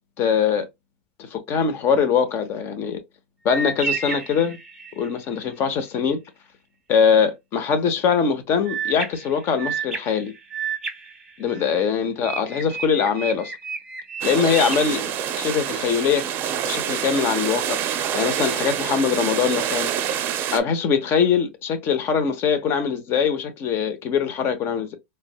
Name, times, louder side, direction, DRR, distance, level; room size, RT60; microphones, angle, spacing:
voice 1, 0.2-0.7 1.2-3.0 3.4-4.6 5.0-6.2 6.9-10.3 11.4-13.5 14.2-16.3 16.6-17.8 18.1-19.9 20.5-25.0, left 6 dB, 40° left, 0.8 m, -22 dB
sound 1, 3.5-5.2 8.7-11.8 12.2-15.7, right 5 dB, 10° right, 1.0 m, -32 dB
sound 2, 14.2-20.6, right 9 dB, 35° right, 0.5 m, -26 dB
4.0 x 2.1 x 2.2 m
hypercardioid pair, 105°, 6 cm